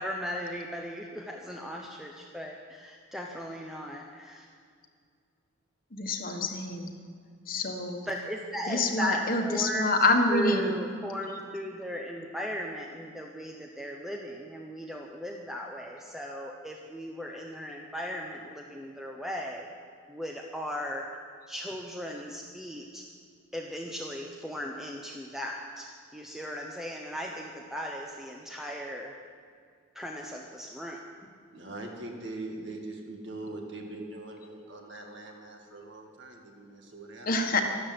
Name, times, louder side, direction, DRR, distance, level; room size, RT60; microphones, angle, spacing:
voice 1, 0.0-4.5 8.1-9.9 10.3-19.7 20.1-21.1 21.5-23.0 23.5-29.1 29.9-31.0, equal, ahead, 0 dB, 0.8 m, -37 dB
voice 2, 5.9-7.0 7.5-8.1 8.7-10.7 37.2-37.6, left 2 dB, 40° left, 4 dB, 1.4 m, -27 dB
voice 3, 31.5-37.5, right 2 dB, 55° right, 2 dB, 2.2 m, -42 dB
13.0 x 12.5 x 7.8 m, 2.2 s
head